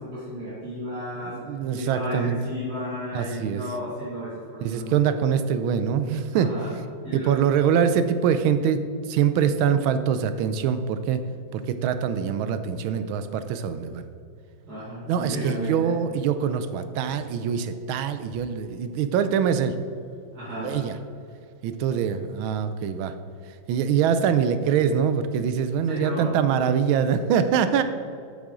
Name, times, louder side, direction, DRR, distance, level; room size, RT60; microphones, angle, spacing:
voice 1, 0.0-1.4 1.7-5.0 6.3-6.7 7.0-7.4 14.7-16.0 20.3-20.8 25.9-26.4, left 1 dB, 50° right, -10 dB, 2.5 m, -33 dB
voice 2, 1.3-2.4 3.1-3.6 4.6-6.5 7.1-8.8 9.1-11.2 11.5-14.0 15.1-19.8 20.6-21.0 21.6-23.1 23.7-27.8, right 8 dB, 85° right, 10 dB, 1.4 m, -24 dB
8.7 x 7.3 x 3.8 m, 2.4 s
omnidirectional pair, 2.2 m